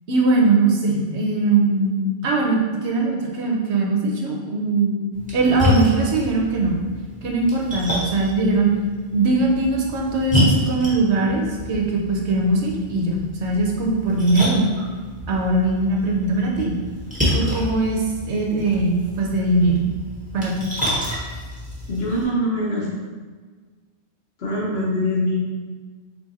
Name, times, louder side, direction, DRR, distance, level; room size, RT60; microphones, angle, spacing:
voice 1, 0.1-5.0 5.3-6.8 7.2-8.7 9.1-14.7 15.3-16.8 17.3-19.9 20.3-20.5, right 2 dB, 70° right, -1 dB, 1.0 m, -21 dB
Splash splatter, 5.1-22.2, left 1 dB, 5° right, 1.0 m, -28 dB
voice 2, 21.9-22.9 24.4-25.4, left 1 dB, 60° left, -4 dB, 1.1 m, -23 dB
3.7 x 2.8 x 4.0 m, 1.5 s
omnidirectional pair, 1.2 m